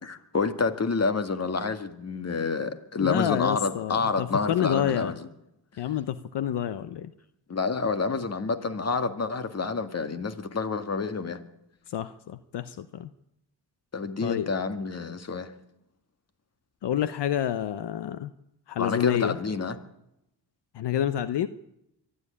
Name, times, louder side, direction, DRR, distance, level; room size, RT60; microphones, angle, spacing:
voice 1, 0.0-5.2 7.5-11.4 13.9-15.5 18.8-19.8, left 4 dB, 35° left, 2.0 m, -28 dB
voice 2, 3.0-5.1 5.8-7.1 11.9-13.1 14.2-14.5 16.8-18.3 18.7-19.4 20.7-21.5, left 10 dB, 70° left, 0.9 m, -28 dB
23.5 x 13.0 x 9.8 m
cardioid pair, 90°, 42 cm